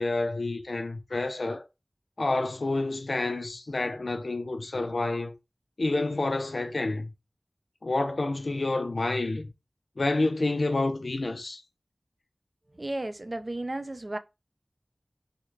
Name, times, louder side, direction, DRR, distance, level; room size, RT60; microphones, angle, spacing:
voice 1, 0.0-1.6 2.2-5.3 5.8-7.1 7.8-9.5 10.0-11.6, left 2 dB, 90° left, 0.5 m, -28 dB
voice 2, 12.8-14.2, right 1 dB, 50° right, 0.4 m, -33 dB
3.6 x 2.2 x 3.2 m
wide cardioid pair, 40°, 0 cm